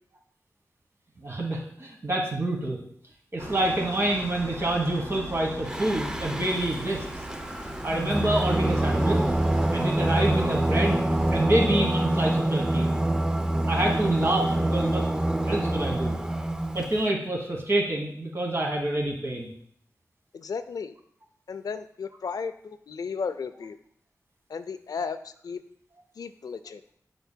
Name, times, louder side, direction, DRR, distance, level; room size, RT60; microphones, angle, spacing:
voice 1, 1.2-2.8 3.3-7.1 7.8-9.2 9.7-11.0 11.3-12.9 13.7-15.0 15.4-16.2 16.7-19.5, right 1 dB, 45° right, 0 dB, 1.3 m, -27 dB
sound 1, 3.4-11.4, right 1 dB, 60° right, 1.7 m, -39 dB
Singing, 5.7-17.0, right 1 dB, 10° right, 0.4 m, -26 dB
voice 2, 20.3-20.9 21.5-23.8 24.5-25.6 26.2-26.8, left 5 dB, 85° left, 11 dB, 0.4 m, -34 dB
8.0 x 5.3 x 2.2 m, 0.65 s
wide cardioid pair, 100°, 6 cm